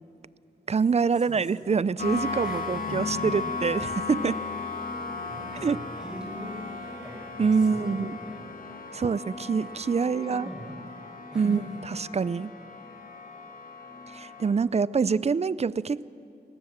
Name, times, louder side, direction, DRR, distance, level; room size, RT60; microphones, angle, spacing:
voice 1, 0.7-4.4 5.6-5.8 7.4-8.2 8.9-10.5 11.3-11.6 12.0-12.5 14.1-16.1, right 5 dB, 40° right, 19 dB, 0.5 m, -25 dB
sound 1, 2.0-14.5, left 4 dB, 55° left, 2.5 m, -36 dB
voice 2, 2.4-3.4 5.3-6.5 6.8-8.5 10.0-11.0 11.3-11.6, right 1 dB, 5° right, -1 dB, 6.4 m, -42 dB
22.0 x 19.0 x 7.4 m, 2.7 s
cardioid pair, 70°, 18 cm